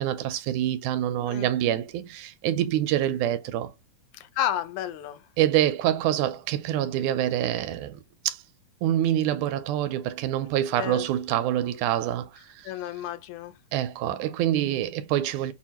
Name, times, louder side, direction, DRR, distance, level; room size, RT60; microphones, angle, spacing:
voice 1, 0.0-3.7 5.4-8.4 8.8-12.3 13.7-15.5, right 12 dB, 90° right, 2.0 m, -26 dB
voice 2, 4.1-5.2 10.8-11.1 12.7-13.5, left 11 dB, 80° left, 1.9 m, -31 dB
6.2 x 2.2 x 2.9 m
omnidirectional pair, 3.4 m